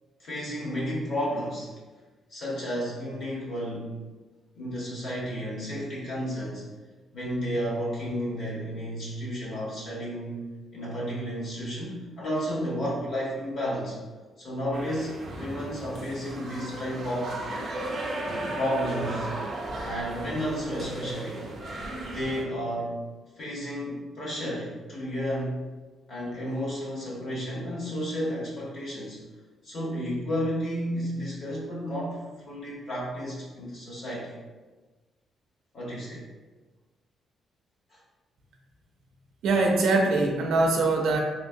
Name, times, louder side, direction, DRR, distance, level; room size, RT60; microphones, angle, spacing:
voice 1, 0.2-1.7 2.3-3.9 4.5-6.6 7.1-10.4 10.7-14.0 14.4-17.4 18.5-19.3 19.8-21.5 22.0-23.0 23.4-25.6 26.1-29.2 29.6-34.3 35.7-36.2 37.9-38.0, equal, 50° left, -6 dB, 1.2 m, -32 dB
sound 1, 14.7-22.4, right 1 dB, 40° right, 0.6 m, -35 dB
voice 2, 39.4-41.2, right 3 dB, 85° right, 1 dB, 0.5 m, -22 dB
3.1 x 2.9 x 2.6 m, 1.3 s
cardioid pair, 155°, 0 cm